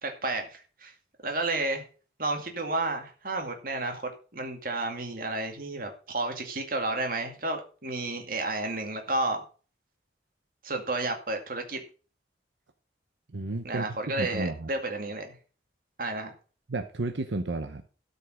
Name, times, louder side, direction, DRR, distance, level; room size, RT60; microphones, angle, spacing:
voice 1, 0.0-0.9 1.2-1.8 2.2-9.4 10.6-11.8 13.6-15.4 16.0-16.3, right 2 dB, 50° right, 4 dB, 2.2 m, -31 dB
voice 2, 13.3-14.7 16.7-17.8, right 2 dB, 85° right, 7 dB, 0.9 m, -32 dB
13.0 x 5.5 x 6.3 m, 0.39 s
head